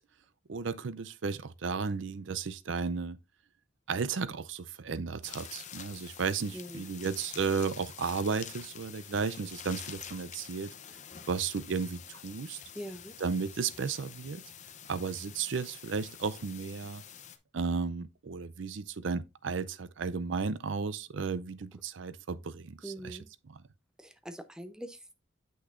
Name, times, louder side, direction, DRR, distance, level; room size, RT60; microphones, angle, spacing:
voice 1, 0.5-3.2 3.9-10.7 11.3-12.6 13.2-14.4 14.9-17.0 17.5-23.2 23.4-23.6, right 5 dB, 65° right, 0.5 m, -34 dB
sound 1, 5.2-17.4, left 9 dB, 40° left, 0.7 m, -47 dB
voice 2, 6.5-6.8 12.7-13.1 22.8-23.3 24.0-25.1, equal, 5° right, 0.7 m, -43 dB
8.0 x 6.2 x 2.5 m
head